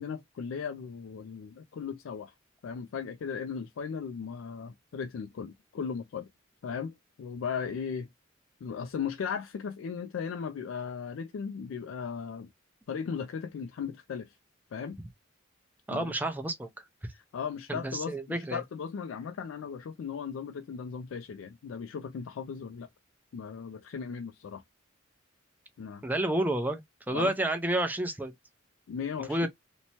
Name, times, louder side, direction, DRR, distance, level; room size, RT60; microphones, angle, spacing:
voice 1, 0.0-2.3 2.6-6.3 6.6-8.1 8.6-12.5 12.9-14.4 14.7-15.0 15.9-16.1 17.1-22.9 23.3-24.6 25.8-26.1 27.1-27.3 28.9-29.5, left 6 dB, 85° left, 0.3 m, -37 dB
voice 2, 15.9-16.8 17.7-18.6 26.0-26.8 27.1-28.3 29.3-29.5, right 1 dB, 10° right, 0.5 m, -30 dB
2.9 x 2.1 x 2.7 m
head